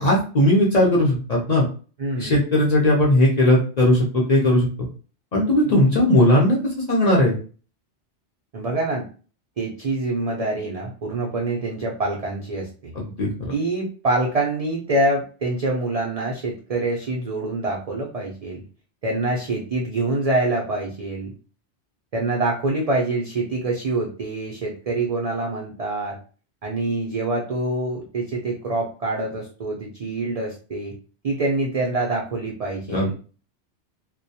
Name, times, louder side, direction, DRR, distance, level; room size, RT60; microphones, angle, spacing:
voice 1, 0.0-1.6 2.2-4.7 5.3-6.6 6.9-7.4 13.0-13.3 32.9-33.1, left 1 dB, 50° left, -3 dB, 0.5 m, -18 dB
voice 2, 2.0-2.4 8.5-9.1 9.6-12.9 13.5-18.6 19.0-21.3 22.1-26.2 26.6-30.9 31.2-33.1, right 2 dB, 75° right, -1 dB, 0.3 m, -25 dB
2.1 x 2.1 x 2.6 m, 0.38 s
omnidirectional pair, 1.2 m